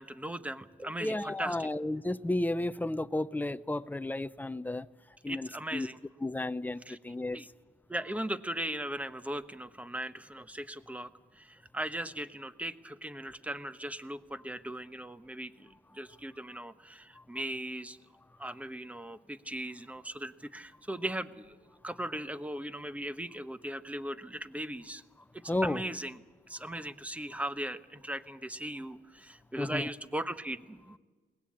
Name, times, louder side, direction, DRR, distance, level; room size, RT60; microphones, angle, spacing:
voice 1, 0.0-1.7 5.3-6.0 6.9-7.0 7.3-7.5 7.9-18.0 18.4-21.6 21.8-25.0 25.3-26.2 26.5-31.0, right 1 dB, 5° right, 1.0 m, -38 dB
voice 2, 1.0-4.9 5.2-5.9 6.2-7.4 16.5-16.6 17.1-17.2 25.5-25.8 26.7-26.8 29.6-29.8, left 2 dB, 10° left, 0.6 m, -33 dB
21.5 x 18.5 x 8.6 m
cardioid pair, 90°, 20 cm